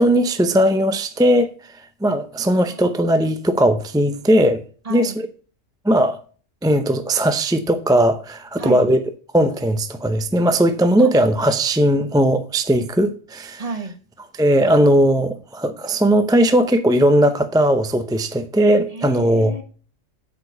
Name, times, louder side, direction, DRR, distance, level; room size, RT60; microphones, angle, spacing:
voice 1, 0.0-1.5 2.0-4.6 4.9-5.3 5.8-6.2 6.6-9.1 9.3-13.6 14.4-19.6, right 1 dB, 5° right, 0.4 m, -18 dB
voice 2, 2.4-3.0 4.8-5.2 8.6-8.9 11.0-11.2 13.6-13.9 18.9-19.6, right 3 dB, 30° right, 1.3 m, -32 dB
8.2 x 5.0 x 6.7 m
omnidirectional pair, 1.3 m